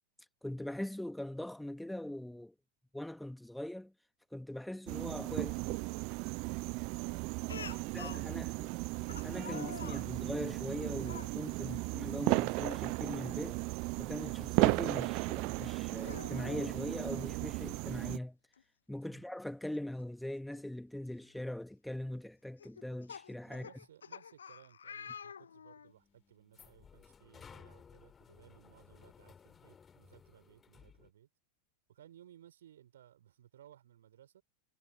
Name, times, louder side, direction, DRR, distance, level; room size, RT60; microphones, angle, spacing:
voice 1, 0.4-2.5 2.9-3.9 4.3-5.5 7.9-8.7 9.2-13.6 14.0-18.4 18.9-23.7, left 1 dB, 5° left, 1.3 m, -41 dB
sound 1, 4.9-18.2, right 30 dB, 45° right, 0.6 m, -35 dB
voice 2, 5.4-6.1 6.5-8.8 11.6-11.9 19.1-19.3 23.5-31.3 31.9-34.4, right 11 dB, 60° right, 5.4 m, -60 dB
Speech, 7.5-8.3 9.1-10.1 11.0-11.3 12.6-12.8 13.2-13.3 15.0-15.1 15.9-16.8 18.1-18.2 18.5-18.6 20.5-20.6 21.2-21.5 22.6-25.9, left 7 dB, 70° left, 0.8 m, -47 dB
sound 2, 25.9-31.1, left 6 dB, 20° left, 3.4 m, -58 dB
figure-of-eight pair, 90°, 0 cm